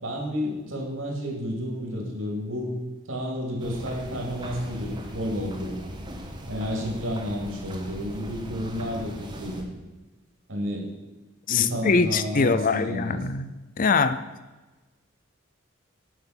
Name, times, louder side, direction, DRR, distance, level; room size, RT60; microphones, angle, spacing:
voice 1, 0.0-2.7 3.1-5.8 6.5-9.7 10.5-10.9 11.5-13.2, equal, 80° right, 0 dB, 2.6 m, -31 dB
sound 1, 3.6-9.6, equal, 20° right, 1.2 m, -39 dB
voice 2, 11.5-14.2, left 4 dB, 45° left, 12 dB, 0.5 m, -23 dB
9.4 x 5.8 x 5.8 m, 1.2 s
head